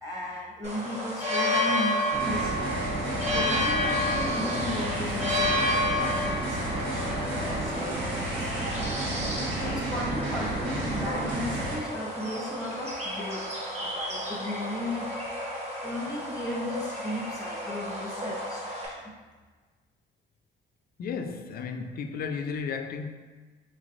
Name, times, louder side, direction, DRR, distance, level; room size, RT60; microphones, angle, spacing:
voice 1, 0.0-2.7 3.3-8.9 9.5-15.1 15.8-19.1, left 1 dB, 5° right, 0.8 m, -36 dB
sound 1, 0.6-18.9, left 1 dB, 35° right, 1.0 m, -31 dB
sound 2, 2.1-11.8, right 1 dB, 80° right, 1.2 m, -32 dB
sound 3, 6.6-11.6, right 3 dB, 50° right, 0.7 m, -40 dB
voice 2, 21.0-23.1, left 5 dB, 50° left, 0.4 m, -33 dB
3.7 x 3.2 x 2.5 m
cardioid pair, 90°, 20 cm